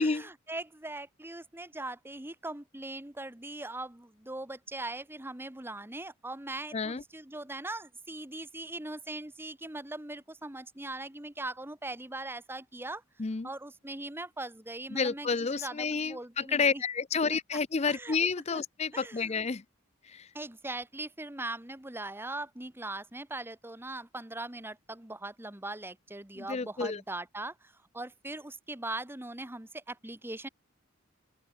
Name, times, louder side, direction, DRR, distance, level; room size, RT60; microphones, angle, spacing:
voice 1, 0.0-13.0 13.4-16.8 17.3-17.4 17.9-18.2 18.5-18.6 18.9-19.3 20.3-30.5, right 2 dB, 10° right, 1.3 m, -40 dB
voice 2, 6.7-7.0 13.2-13.5 14.9-19.6 20.0-20.3 26.4-27.0, left 5 dB, 35° left, 0.6 m, -30 dB
open air
head